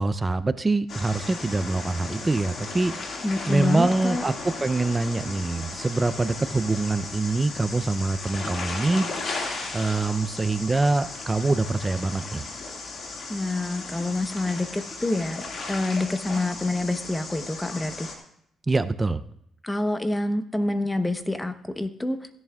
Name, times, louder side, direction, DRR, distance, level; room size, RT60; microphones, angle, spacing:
voice 1, 0.0-9.1 9.7-12.4 18.7-19.2, right 3 dB, 20° right, 12 dB, 0.5 m, -25 dB
sound 1, 0.9-18.2, left 3 dB, 55° left, 2.0 m, -36 dB
voice 2, 3.2-4.2 13.3-18.1 19.6-22.2, left 2 dB, 10° left, 9 dB, 0.9 m, -27 dB
16.0 x 11.0 x 2.4 m, 0.70 s
cardioid pair, 90°, 0 cm